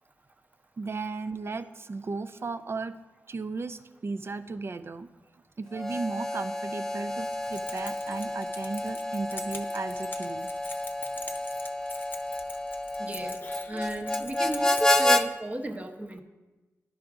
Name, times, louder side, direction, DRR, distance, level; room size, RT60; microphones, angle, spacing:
voice 1, 0.8-2.9 3.3-5.1 5.6-10.5, right 3 dB, 45° right, 11 dB, 0.5 m, -35 dB
Harmonica, 5.7-15.3, left 1 dB, 10° left, 0.4 m, -30 dB
Keys jangling, 7.2-15.2, left 2 dB, 35° left, 0.8 m, -44 dB
voice 2, 13.0-13.4 13.7-16.2, right 1 dB, 25° right, 4 dB, 0.9 m, -34 dB
11.0 x 4.8 x 3.6 m, 1.2 s
cardioid pair, 55°, 6 cm